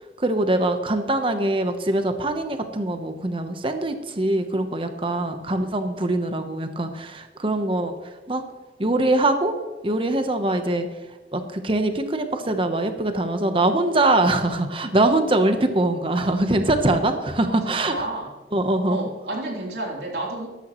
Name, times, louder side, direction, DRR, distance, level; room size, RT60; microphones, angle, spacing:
voice 1, 0.2-7.9 8.3-8.4 8.8-9.6 9.8-10.9 11.3-17.9 18.5-19.0, right 2 dB, 30° right, 7 dB, 1.0 m, -23 dB
voice 2, 17.5-18.3 18.9-20.5, right 2 dB, 70° right, -2 dB, 3.4 m, -31 dB
13.0 x 12.5 x 3.1 m, 1.2 s
head